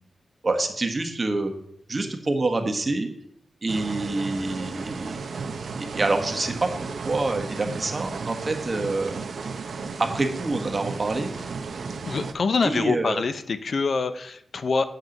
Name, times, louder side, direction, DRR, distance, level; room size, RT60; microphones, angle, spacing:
voice 1, 0.4-1.5 1.9-3.1 3.6-5.2 5.8-6.7 7.0-9.1 10.1-11.3 12.6-13.2, right 2 dB, 40° right, 4 dB, 1.3 m, -26 dB
sound 1, 3.7-12.3, right 4 dB, 75° right, 0.8 m, -34 dB
voice 2, 12.0-14.8, left 4 dB, 65° left, 11 dB, 0.6 m, -25 dB
8.1 x 7.5 x 3.9 m, 0.71 s
cardioid pair, 75°, 0 cm